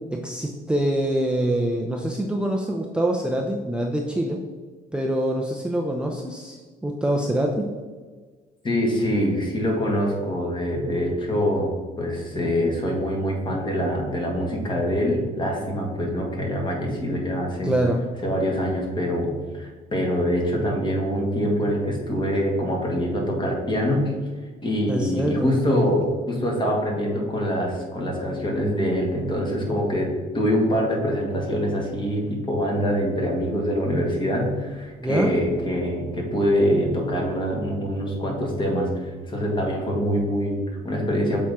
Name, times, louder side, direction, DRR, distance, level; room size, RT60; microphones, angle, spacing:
voice 1, 0.1-4.4 4.9-7.7 17.6-18.0 24.9-25.9 35.0-35.3, right 1 dB, 5° right, 0 dB, 0.6 m, -25 dB
voice 2, 8.6-11.7 12.0-17.8 18.2-24.1 24.6-41.4, equal, 30° left, 0 dB, 1.8 m, -24 dB
7.4 x 4.3 x 3.6 m, 1.4 s
cardioid pair, 110°, 17 cm